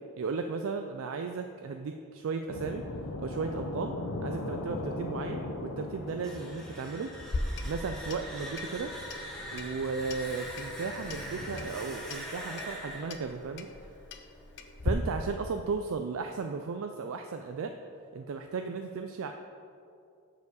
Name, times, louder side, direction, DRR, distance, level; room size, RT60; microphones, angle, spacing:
voice 1, 0.2-2.9 3.2-3.9 4.2-7.2 7.6-9.0 9.5-13.7 14.8-17.8 18.1-19.3, right 4 dB, 70° right, 5 dB, 0.4 m, -35 dB
sound 1, 2.5-11.7, left 2 dB, 85° left, 0.8 m, -40 dB
sound 2, 6.1-14.9, equal, 5° left, 1.2 m, -43 dB
Clock, 7.2-14.9, left 2 dB, 50° left, 0.5 m, -40 dB
7.0 x 4.8 x 6.4 m, 2.5 s
head